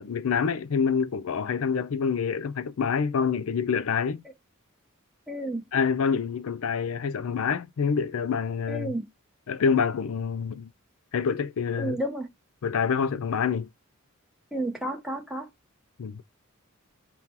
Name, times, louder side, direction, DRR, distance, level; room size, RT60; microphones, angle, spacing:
voice 1, 0.0-4.2 5.7-9.0 9.5-10.7 11.1-12.0 12.6-13.7 16.0-16.2, left 6 dB, 75° left, 0.4 m, -27 dB
voice 2, 5.3-5.6 8.7-9.0 11.8-12.3 14.5-15.5, right 1 dB, ahead, 0.6 m, -31 dB
4.1 x 3.7 x 2.9 m
head